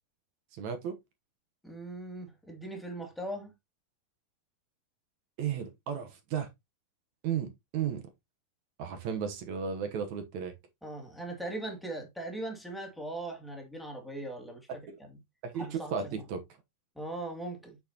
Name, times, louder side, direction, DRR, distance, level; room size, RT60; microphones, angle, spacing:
voice 1, 0.5-1.0 5.4-6.5 7.2-8.0 8.8-10.5 14.9-15.0 15.4-16.4, right 7 dB, 65° right, 2.0 m, -34 dB
voice 2, 1.6-3.5 10.8-14.7 15.0-15.2 15.5-16.2 16.9-17.8, right 1 dB, ahead, 1.3 m, -39 dB
8.2 x 6.5 x 2.8 m
omnidirectional pair, 4.2 m